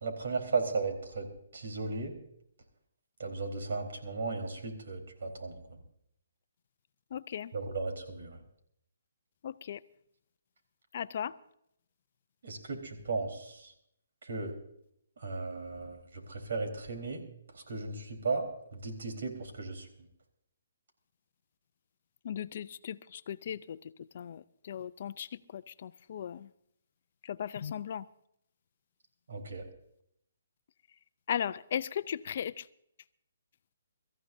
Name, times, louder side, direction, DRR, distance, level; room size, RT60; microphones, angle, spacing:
voice 1, 0.0-1.3 1.5-2.1 3.2-5.5 7.5-8.4 12.4-13.7 14.2-14.6 15.2-17.2 17.7-18.4 18.7-19.9 29.3-29.6, right 4 dB, 70° right, 4 dB, 4.1 m, -35 dB
voice 2, 7.1-7.5 9.4-9.8 10.9-11.3 22.2-26.5 27.2-28.0 31.3-32.7, left 9 dB, 50° left, 16 dB, 0.5 m, -37 dB
24.0 x 14.5 x 2.7 m, 0.73 s
hypercardioid pair, 160°, 0 cm